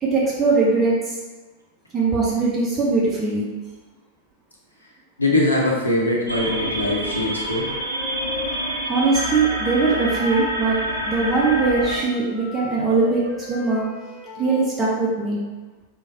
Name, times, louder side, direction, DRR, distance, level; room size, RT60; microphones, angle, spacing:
voice 1, 0.0-0.9 1.9-3.5 8.9-13.2 13.5-13.8 14.4-15.4, right 3 dB, 20° right, -6 dB, 0.7 m, -21 dB
voice 2, 5.2-7.7, left 1 dB, 85° left, -3 dB, 0.6 m, -22 dB
sound 1, 6.3-12.0, right 1 dB, 80° right, 0.4 m, -28 dB
Wind instrument woodwind instrument, 7.0-10.6 10.8-14.7, left 3 dB, 10° left, 1.3 m, -37 dB
3.2 x 2.2 x 2.7 m, 1.2 s
figure-of-eight pair, 90°, 0 cm